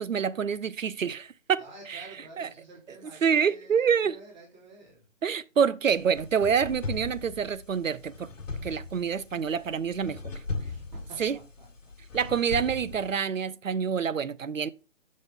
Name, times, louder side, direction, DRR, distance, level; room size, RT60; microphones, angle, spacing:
voice 1, 0.0-1.6 1.9-2.0 2.4-2.5 3.2-4.2 5.2-8.3 8.6-10.2 11.2-11.3 12.1-14.7, right 7 dB, 85° right, 0.7 m, -27 dB
voice 2, 1.6-5.1 10.6-11.9, right 2 dB, 35° right, 2.8 m, -48 dB
sound 1, 5.9-13.2, left 3 dB, 80° left, 1.2 m, -39 dB
6.4 x 5.4 x 3.5 m
figure-of-eight pair, 155°, 38 cm